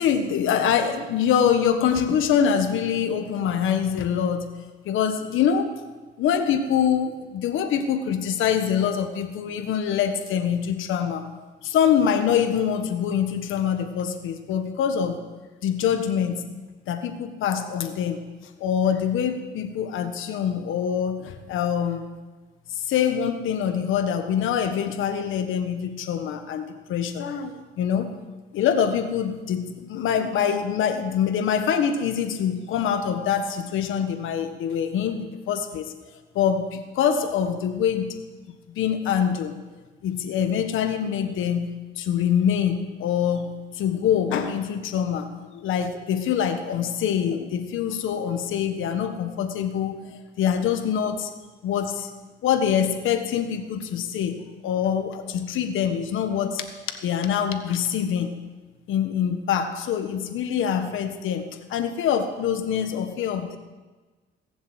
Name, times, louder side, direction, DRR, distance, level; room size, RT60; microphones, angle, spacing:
voice 1, 0.0-4.5 4.8-5.8 6.2-11.2 11.6-15.2 15.6-16.4 16.9-18.2 18.6-22.0 22.7-28.1 28.5-35.9 36.3-38.2 38.7-39.6 40.0-51.3 51.6-52.1 52.4-54.4 54.6-56.6 57.0-58.3 58.9-63.6, left 8 dB, 85° left, 7 dB, 1.5 m, -24 dB
19.0 x 7.3 x 8.0 m, 1.3 s
cardioid pair, 90°, 20 cm